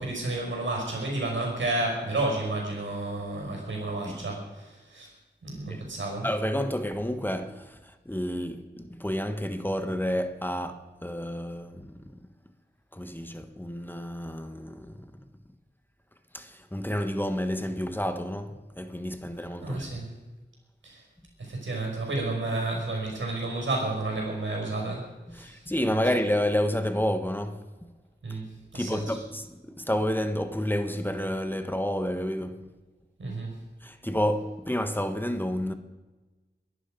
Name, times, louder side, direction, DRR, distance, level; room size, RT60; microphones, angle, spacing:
voice 1, 0.0-5.1 5.4-6.3 19.6-20.1 20.8-21.0 21.4-25.0 25.3-25.6 28.2-29.2 33.2-33.5, right 2 dB, 90° right, 5.7 m, -31 dB
voice 2, 6.2-12.2 12.9-15.1 16.3-20.0 25.3-27.6 28.3-28.4 28.7-32.7 33.8-35.7, equal, 10° left, 1.2 m, -30 dB
22.5 x 11.0 x 5.2 m
wide cardioid pair, 70°, 19 cm